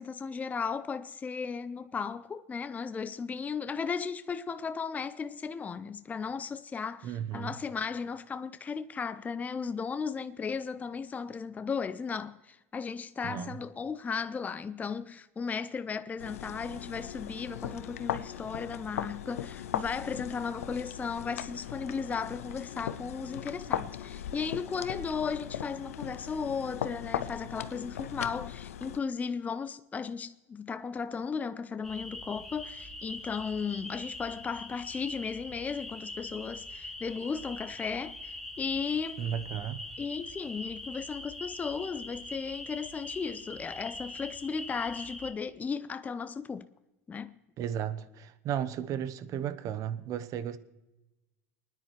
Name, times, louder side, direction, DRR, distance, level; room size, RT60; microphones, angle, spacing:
voice 1, 0.0-39.3 40.0-46.7 47.1-47.4, left 5 dB, 20° left, 0.5 m, -35 dB
voice 2, 7.0-7.5 13.2-13.6 39.2-39.8 47.6-50.6, right 9 dB, 50° right, 1.0 m, -34 dB
sound 1, 16.2-29.0, left 10 dB, 85° left, 0.6 m, -38 dB
sound 2, 31.8-45.3, left 2 dB, ahead, 2.8 m, -43 dB
28.5 x 10.0 x 3.2 m
hypercardioid pair, 90°, 8 cm